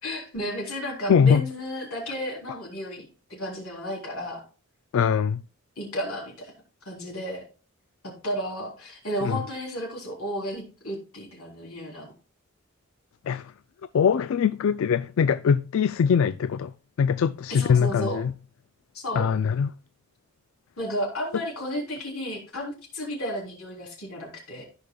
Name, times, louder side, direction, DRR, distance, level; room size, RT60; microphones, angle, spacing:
voice 1, 0.0-4.4 5.8-6.5 6.9-7.4 8.0-12.1 17.5-18.2 18.9-19.3 20.8-24.6, equal, 90° left, 3.5 m, -33 dB
voice 2, 1.1-1.5 4.9-5.4 9.2-9.4 13.2-13.5 13.9-16.7 17.0-18.3 19.1-19.7, left 7 dB, 70° left, 0.3 m, -22 dB
15.5 x 5.1 x 2.3 m
head